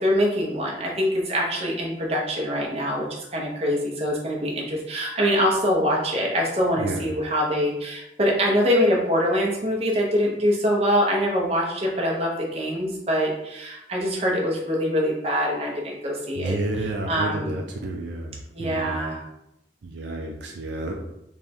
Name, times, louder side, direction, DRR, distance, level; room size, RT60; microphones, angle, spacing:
voice 1, 0.0-16.6 16.8-17.6 18.5-19.2, equal, 35° right, -3 dB, 0.8 m, -24 dB
voice 2, 6.8-7.1 16.4-19.0 19.8-20.9, right 2 dB, 75° right, 1 dB, 0.5 m, -30 dB
3.5 x 2.3 x 4.3 m, 0.86 s
head